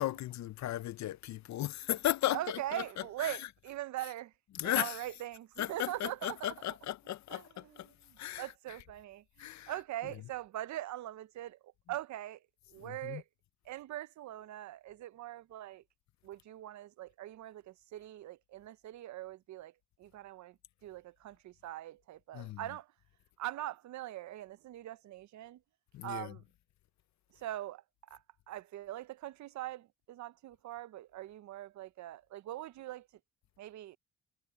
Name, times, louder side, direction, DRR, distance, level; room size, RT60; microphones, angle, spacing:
voice 1, 0.0-3.5 4.5-5.0 5.6-8.8 9.4-9.7 10.0-10.1 12.8-13.2 22.3-22.7 25.9-26.4, left 14 dB, 65° left, 0.7 m, -36 dB
voice 2, 2.3-4.3 4.6-6.5 7.3-7.4 8.1-11.6 11.9-12.4 12.7-13.2 13.7-15.8 16.2-19.7 20.0-20.6 20.8-22.9 23.4-25.6 26.0-26.4 27.4-27.8 28.1-28.2 28.5-33.1 33.6-34.0, right 14 dB, 70° right, 0.7 m, -42 dB
cardioid pair, 90°, 30 cm